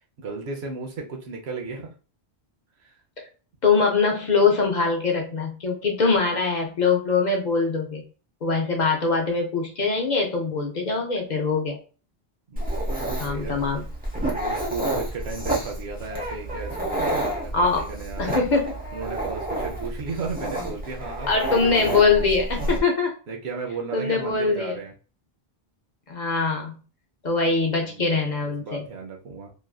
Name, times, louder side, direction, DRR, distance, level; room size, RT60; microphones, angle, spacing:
voice 1, 0.2-1.9 2.8-2.9 12.5-13.6 14.3-18.4 18.9-22.1 23.3-24.9 27.7-29.5, right 4 dB, 80° right, 1 dB, 1.0 m, -35 dB
voice 2, 3.6-8.0 8.4-11.8 13.2-13.8 17.5-17.9 18.2-18.8 21.3-23.1 23.9-24.8 26.1-26.8 27.2-28.8, left 4 dB, 50° left, 1 dB, 0.7 m, -23 dB
Dog, 12.6-22.8, right 1 dB, 10° right, 0.7 m, -29 dB
3.1 x 2.4 x 2.3 m, 0.36 s
omnidirectional pair, 1.1 m